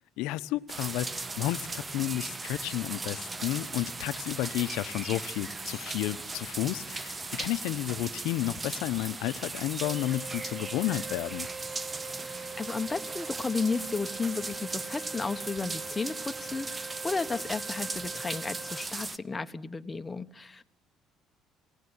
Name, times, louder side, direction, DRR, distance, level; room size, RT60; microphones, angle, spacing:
voice 1, 0.2-11.5, left 15 dB, 85° left, 0.9 m, -32 dB
sound 1, 0.7-19.2, right 3 dB, 25° right, 1.0 m, -38 dB
Wind instrument woodwind instrument, 9.8-18.9, right 5 dB, 45° right, 1.4 m, -43 dB
voice 2, 12.2-20.6, left 4 dB, 20° left, 1.3 m, -33 dB
29.0 x 17.0 x 9.9 m
cardioid pair, 95°, 0 cm